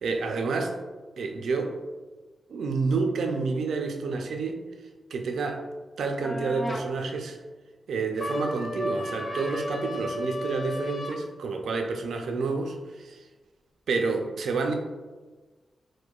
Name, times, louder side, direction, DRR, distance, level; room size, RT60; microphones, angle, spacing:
voice 1, 0.0-0.8 1.2-1.8 2.5-4.6 5.1-5.6 6.0-7.4 7.9-13.2 13.9-14.7, right 4 dB, 85° right, 4 dB, 0.4 m, -29 dB
sound 1, 6.2-6.9 8.2-11.2, left 1 dB, 20° left, 0.4 m, -33 dB
4.7 x 2.1 x 2.3 m, 1.3 s
cardioid pair, 55°, 0 cm